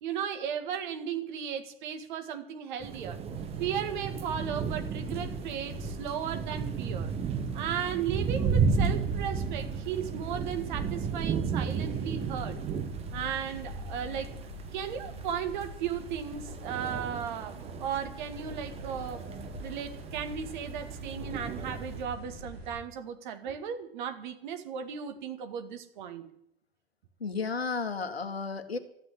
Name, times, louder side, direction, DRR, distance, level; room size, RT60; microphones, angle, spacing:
voice 1, 0.0-3.2 3.6-7.1 7.5-12.6 13.1-14.4 14.7-19.3 19.6-26.3, right 8 dB, 50° right, 7 dB, 2.0 m, -35 dB
sound 1, 2.8-22.0, right 6 dB, 20° right, 1.1 m, -34 dB
sound 2, 3.3-22.8, equal, 85° right, 4.0 m, -43 dB
voice 2, 27.2-28.8, left 4 dB, 80° left, 7 dB, 1.7 m, -33 dB
13.5 x 9.6 x 9.5 m, 0.74 s
figure-of-eight pair, 95°, 30 cm